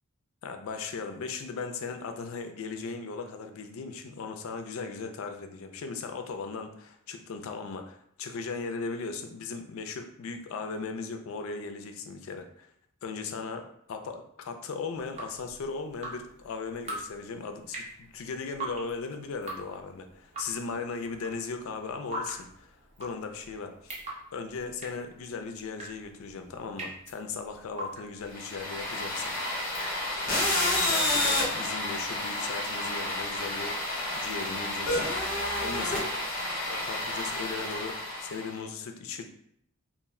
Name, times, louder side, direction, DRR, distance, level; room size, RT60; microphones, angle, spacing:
voice 1, 0.4-12.7 13.0-24.0 24.3-29.3 30.8-36.1 36.7-39.2, left 4 dB, 65° left, 6 dB, 0.3 m, -37 dB
Drip, 14.9-30.4, right 1 dB, 30° right, 0.5 m, -43 dB
sound 1, 28.3-38.5, left 1 dB, 40° left, 0.9 m, -30 dB
2.4 x 2.1 x 3.5 m, 0.69 s
head